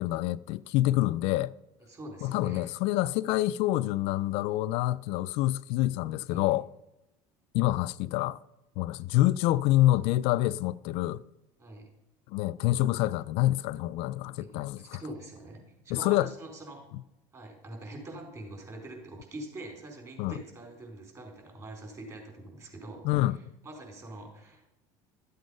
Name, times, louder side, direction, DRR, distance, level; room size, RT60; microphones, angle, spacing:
voice 1, 0.0-1.5 2.2-6.7 7.5-8.4 8.8-11.2 12.3-15.0 15.9-16.3 20.2-20.4 23.0-23.4, left 16 dB, 65° left, 0.4 m, -27 dB
voice 2, 1.9-2.7 6.3-6.4 11.6-11.9 14.4-16.9 17.3-24.7, right 1 dB, 30° right, 4.6 m, -44 dB
13.5 x 7.9 x 5.4 m
supercardioid pair, 95°, 11 cm